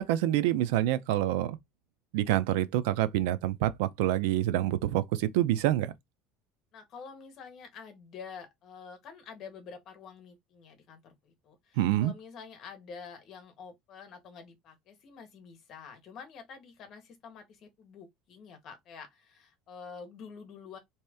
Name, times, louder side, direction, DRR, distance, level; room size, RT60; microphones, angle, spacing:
voice 1, 0.0-1.6 2.1-5.9 11.8-12.1, right 13 dB, 90° right, 0.4 m, -27 dB
voice 2, 6.7-20.8, left 5 dB, 35° left, 1.0 m, -48 dB
3.1 x 2.8 x 3.4 m
cardioid pair, 180°, 0 cm